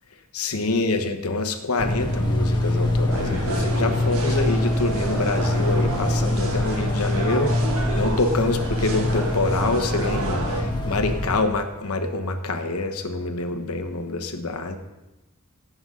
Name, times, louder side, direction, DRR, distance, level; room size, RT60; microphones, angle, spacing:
voice 1, 0.3-7.5 8.0-14.8, left 3 dB, 75° left, 6 dB, 1.2 m, -26 dB
sound 1, 1.8-11.4, left 1 dB, 20° left, 1.7 m, -24 dB
sound 2, 3.1-10.6, right 2 dB, 70° right, 1.9 m, -31 dB
17.0 x 7.9 x 3.9 m, 1.0 s
head